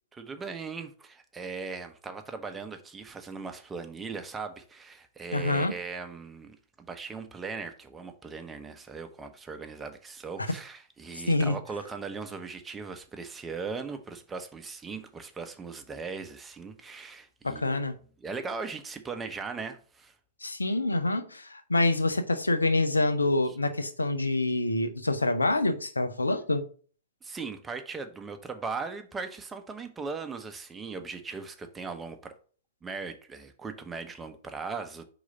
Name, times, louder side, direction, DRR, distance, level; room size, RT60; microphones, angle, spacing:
voice 1, 0.1-17.8 18.2-20.1 27.2-32.3 32.8-35.0, right 4 dB, 15° right, 0.9 m, -39 dB
voice 2, 5.3-5.7 11.3-11.6 17.4-17.9 20.4-26.7, left 2 dB, 85° left, 0.8 m, -26 dB
4.8 x 3.9 x 5.5 m
figure-of-eight pair, 110°, 0 cm